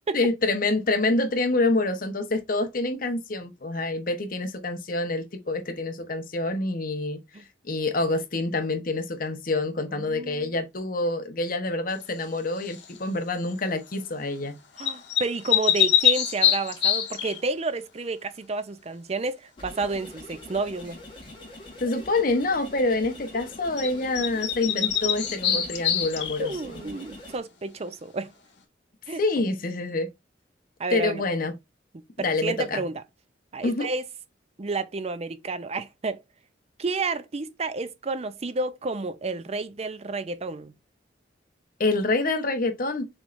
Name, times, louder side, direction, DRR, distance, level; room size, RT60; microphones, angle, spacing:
voice 1, 0.1-7.2 7.7-14.6 21.8-26.8 29.2-30.1 30.9-31.5 32.2-32.8 33.6-33.9 41.8-43.1, left 2 dB, 50° left, 1.0 m, -27 dB
voice 2, 9.9-10.5 14.8-21.0 26.4-28.3 29.1-29.2 30.8-31.2 32.2-33.0 33.5-34.1 34.6-36.2 36.8-40.7, right 3 dB, 35° right, 0.5 m, -30 dB
sound 1, 12.6-13.0 14.8-17.4 23.8-23.9 24.1-26.6, left 10 dB, 80° left, 1.5 m, -24 dB
sound 2, 19.6-27.4, left 1 dB, 30° left, 2.5 m, -44 dB
6.3 x 3.2 x 2.5 m
head